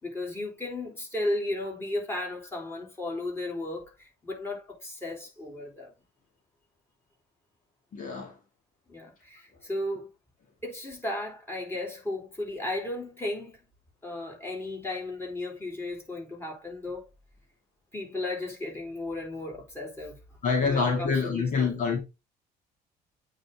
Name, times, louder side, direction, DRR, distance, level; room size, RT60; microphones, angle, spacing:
voice 1, 0.0-5.9 8.9-10.1 10.6-13.6 14.0-17.1 17.9-20.2 20.7-21.8, left 2 dB, 15° left, 3.5 m, -35 dB
voice 2, 7.9-8.3 20.4-22.0, left 5 dB, 50° left, 2.0 m, -26 dB
8.7 x 3.9 x 3.5 m
cardioid pair, 110°, 17 cm